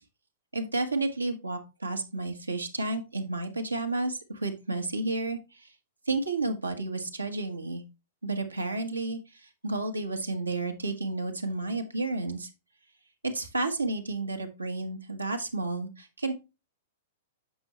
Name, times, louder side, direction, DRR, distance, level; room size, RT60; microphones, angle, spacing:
voice 1, 0.5-5.7 6.1-7.8 8.2-12.5 13.2-16.3, right 2 dB, 90° right, 5 dB, 1.3 m, -31 dB
7.7 x 5.4 x 3.0 m, 0.27 s
figure-of-eight pair, 105°, 0 cm